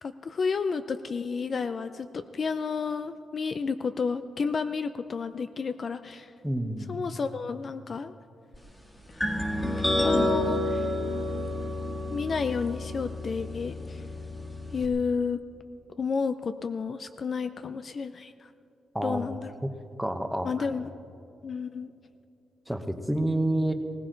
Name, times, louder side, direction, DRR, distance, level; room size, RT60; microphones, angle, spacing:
voice 1, 0.0-6.3 6.9-8.1 9.2-9.3 9.8-10.9 12.1-14.0 14.7-15.4 16.0-18.5 19.0-19.5 20.4-20.9 21.4-21.9, left 5 dB, 40° left, 10 dB, 0.4 m, -31 dB
voice 2, 6.4-7.0 18.9-19.3 20.0-20.5 22.7-23.7, right 1 dB, ahead, 6 dB, 0.9 m, -28 dB
sound 1, 9.2-14.9, left 1 dB, 15° left, 1.8 m, -29 dB
20.0 x 18.0 x 3.9 m, 2.6 s
cardioid pair, 135°, 0 cm